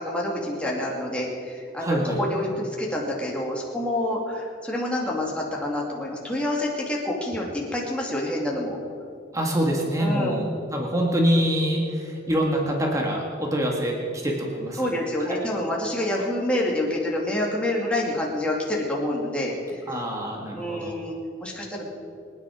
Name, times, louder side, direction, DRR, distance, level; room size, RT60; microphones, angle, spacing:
voice 1, 0.0-8.8 10.0-10.4 14.8-19.8 20.5-21.9, left 1 dB, 5° left, -3 dB, 2.5 m, -27 dB
voice 2, 1.8-2.2 9.3-10.5 10.7-14.8 15.3-15.4 19.9-21.0, equal, 15° right, -1 dB, 1.9 m, -25 dB
25.0 x 10.0 x 4.8 m, 2.5 s
head